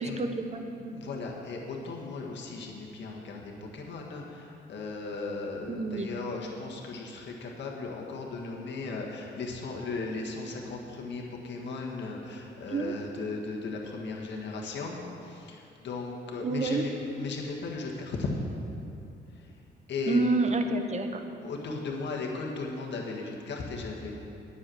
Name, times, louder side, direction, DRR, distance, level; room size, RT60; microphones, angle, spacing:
voice 1, 0.0-0.9 5.7-6.1 12.7-12.9 16.4-16.9 20.1-21.1, right 3 dB, 35° right, 6 dB, 1.0 m, -28 dB
voice 2, 0.8-18.3 19.9-20.2 21.4-24.2, left 3 dB, 65° left, -1 dB, 1.8 m, -36 dB
9.8 x 7.2 x 7.9 m, 2.7 s
cardioid pair, 90°, 20 cm